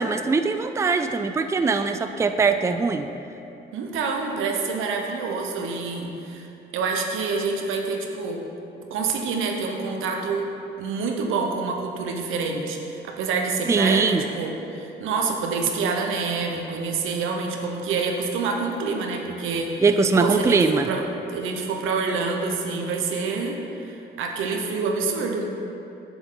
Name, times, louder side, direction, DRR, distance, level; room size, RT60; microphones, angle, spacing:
voice 1, 0.0-3.1 13.7-14.2 19.8-20.9, right 4 dB, 15° right, 8 dB, 0.4 m, -21 dB
voice 2, 3.7-6.5 6.7-8.4 8.9-10.5 10.8-19.8 20.1-21.0 21.3-25.4, right 4 dB, 90° right, 1 dB, 1.0 m, -27 dB
7.8 x 7.1 x 3.9 m, 2.8 s
cardioid pair, 90°, 20 cm